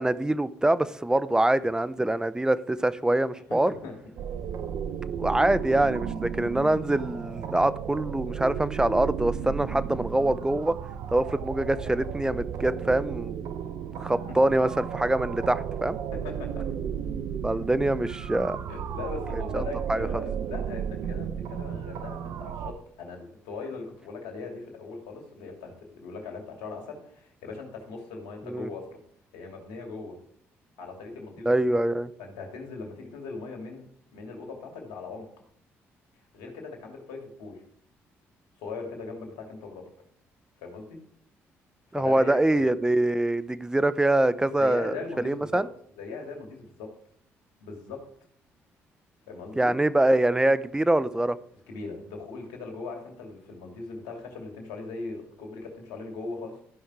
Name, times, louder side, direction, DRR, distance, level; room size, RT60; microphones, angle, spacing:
voice 1, 0.0-3.7 5.2-10.7 11.1-13.4 14.0-16.0 17.4-18.6 19.5-20.2 28.5-28.7 31.5-32.1 41.9-45.7 49.6-51.4, right 1 dB, 10° right, 15 dB, 0.7 m, -24 dB
voice 2, 3.5-3.9 14.3-14.4 16.1-16.6 18.7-29.0 29.3-30.2 30.8-31.5 32.2-33.9 34.1-35.3 36.3-37.6 38.6-39.8 40.6-41.0 41.9-42.7 44.6-45.6 46.0-46.9 47.6-48.0 49.3-49.7 51.7-56.6, left 4 dB, 85° left, 2 dB, 2.6 m, -39 dB
sound 1, 4.2-22.7, right 8 dB, 70° right, 0.8 m, -34 dB
13.5 x 5.6 x 4.8 m, 0.64 s
supercardioid pair, 55°, 6 cm